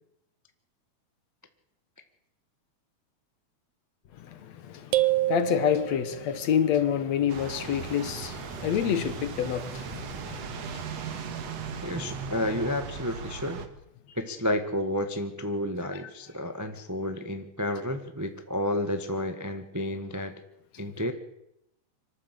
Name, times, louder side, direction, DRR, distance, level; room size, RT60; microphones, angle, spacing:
voice 1, 4.2-11.4 15.9-16.0, left 9 dB, 65° left, 2.5 m, -28 dB
sound 1, 4.9-6.4, right 17 dB, 80° right, 2.3 m, -27 dB
sound 2, 7.3-13.7, right 6 dB, 60° right, 2.6 m, -37 dB
voice 2, 11.8-13.6 14.1-20.3 20.8-21.1, left 1 dB, 20° right, 0.4 m, -31 dB
25.0 x 13.0 x 8.3 m
omnidirectional pair, 3.4 m